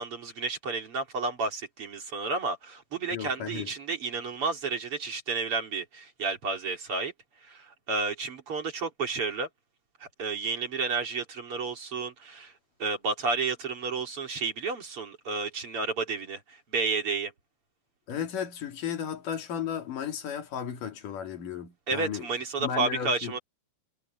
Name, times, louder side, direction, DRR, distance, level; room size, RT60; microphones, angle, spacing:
voice 1, 0.0-7.1 7.4-9.5 10.0-12.5 12.8-17.3 21.9-23.4, right 4 dB, 45° right, 3.7 m, -31 dB
voice 2, 3.1-3.7 18.1-22.3 22.6-23.3, left 8 dB, 85° left, 3.9 m, -34 dB
omnidirectional pair, 3.6 m